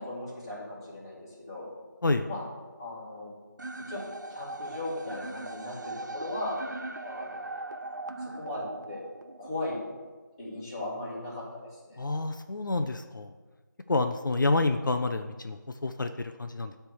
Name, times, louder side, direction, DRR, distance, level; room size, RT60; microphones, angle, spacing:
voice 1, 0.0-1.7 2.3-2.4 2.8-3.3 3.9-6.5 7.0-7.5 8.2-9.0 9.4-9.8 10.4-12.0, left 2 dB, 15° left, -10 dB, 1.8 m, -38 dB
sound 1, 3.6-9.6, right 2 dB, 65° right, 0.6 m, -39 dB
voice 2, 12.0-13.3 13.9-16.7, left 2 dB, 75° left, 7 dB, 0.5 m, -28 dB
9.8 x 3.4 x 6.2 m, 1.3 s
figure-of-eight pair, 175°, 11 cm